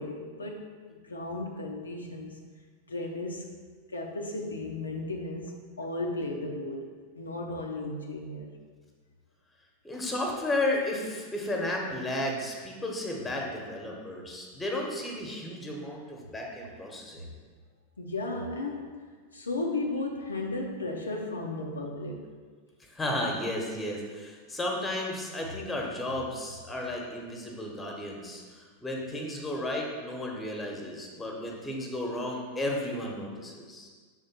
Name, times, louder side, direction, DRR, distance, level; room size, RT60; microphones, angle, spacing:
voice 1, 0.0-2.4 2.9-3.5 3.9-8.5 18.0-19.0 19.3-22.3, left 2 dB, 75° left, 1 dB, 0.6 m, -35 dB
voice 2, 9.8-17.2 22.9-33.9, left 1 dB, 10° left, 0 dB, 1.1 m, -33 dB
6.2 x 3.7 x 4.3 m, 1.5 s
figure-of-eight pair, 90°, 0 cm